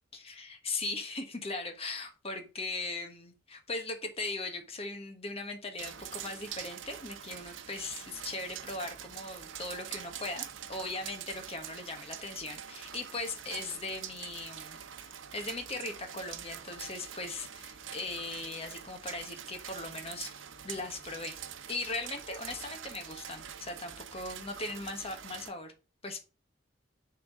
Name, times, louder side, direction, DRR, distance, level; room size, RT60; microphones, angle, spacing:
voice 1, 0.1-25.7 26.0-26.2, left 3 dB, 30° left, 5 dB, 1.3 m, -39 dB
sound 1, 5.8-25.5, right 9 dB, 85° right, 0.8 m, -45 dB
7.0 x 3.8 x 6.0 m, 0.32 s
head